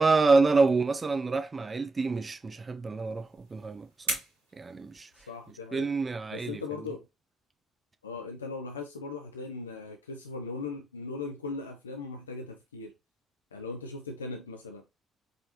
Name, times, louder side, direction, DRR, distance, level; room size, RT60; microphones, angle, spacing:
voice 1, 0.0-4.2 4.6-5.1 5.7-6.6, right 4 dB, 30° right, 0.6 m, -27 dB
sound 1, 3.0-5.7, right 3 dB, 90° right, 1.5 m, -39 dB
voice 2, 5.1-5.9 6.3-7.1 8.0-12.9 13.5-14.8, left 3 dB, 90° left, 0.4 m, -39 dB
4.8 x 2.9 x 2.8 m
hypercardioid pair, 45°, 0 cm